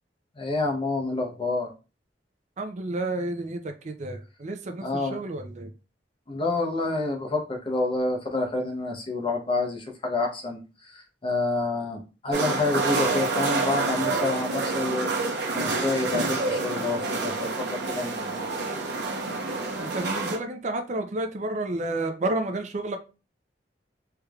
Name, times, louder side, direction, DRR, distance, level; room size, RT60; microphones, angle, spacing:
voice 1, 0.4-1.7 4.8-5.2 6.3-10.6 11.2-15.1 15.5-17.5 17.9-18.4, left 2 dB, 30° left, 0.7 m, -28 dB
voice 2, 2.6-5.7 19.8-23.0, right 2 dB, 40° right, 0.5 m, -31 dB
sound 1, 12.3-20.4, right 3 dB, 65° right, 0.8 m, -28 dB
3.3 x 3.1 x 2.3 m
head